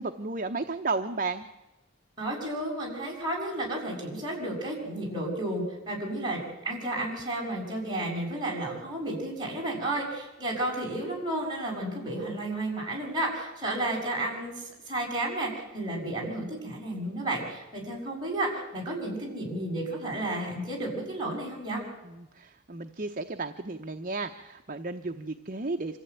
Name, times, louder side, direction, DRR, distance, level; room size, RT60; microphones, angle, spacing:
voice 1, 0.0-1.5 22.0-26.0, right 3 dB, 40° right, 6 dB, 0.8 m, -33 dB
voice 2, 2.2-21.8, right 1 dB, 20° right, -3 dB, 7.0 m, -32 dB
26.0 x 14.5 x 9.2 m, 1.0 s
head